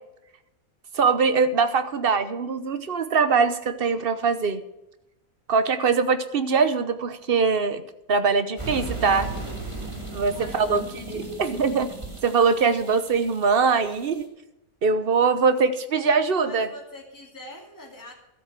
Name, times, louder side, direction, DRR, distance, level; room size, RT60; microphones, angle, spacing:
voice 1, 0.9-4.6 5.5-7.8 8.1-9.3 10.1-11.9 12.2-14.3 14.8-16.7, right 5 dB, 45° right, 11 dB, 1.0 m, -22 dB
sound 1, 8.6-14.2, right 3 dB, 20° right, 2.5 m, -36 dB
voice 2, 10.3-11.4 16.4-18.1, left 1 dB, 15° left, -1 dB, 2.5 m, -42 dB
13.0 x 8.6 x 6.1 m, 0.90 s
omnidirectional pair, 1.5 m